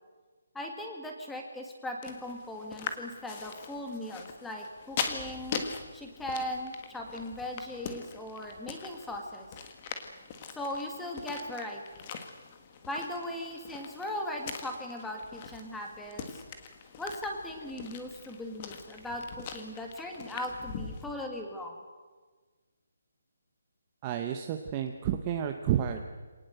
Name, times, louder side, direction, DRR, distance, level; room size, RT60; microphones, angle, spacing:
voice 1, 0.5-9.5 10.5-12.0 12.9-16.4 17.0-21.8, left 1 dB, 5° left, 2 dB, 1.8 m, -38 dB
sound 1, 2.0-21.0, left 6 dB, 20° left, 1.5 m, -42 dB
voice 2, 24.0-26.0, right 10 dB, 15° right, 5 dB, 0.8 m, -30 dB
26.0 x 19.0 x 7.9 m, 1.4 s
hypercardioid pair, 180°, 0 cm